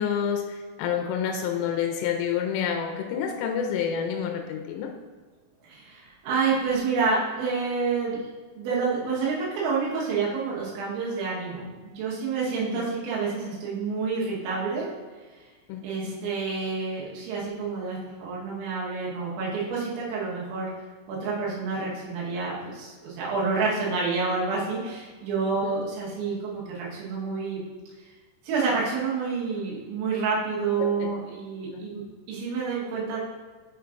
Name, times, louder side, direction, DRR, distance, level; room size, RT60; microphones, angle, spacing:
voice 1, 0.0-4.9 12.7-12.8 15.7-16.2 25.6-25.8 30.8-31.1 31.7-31.9, left 7 dB, 90° left, 4 dB, 3.2 m, -29 dB
voice 2, 5.6-8.2 8.6-14.9 15.8-20.7 21.1-27.6 28.5-32.0 32.3-33.2, right 4 dB, 75° right, -5 dB, 3.6 m, -28 dB
8.5 x 5.6 x 2.5 m, 1.4 s
omnidirectional pair, 5.7 m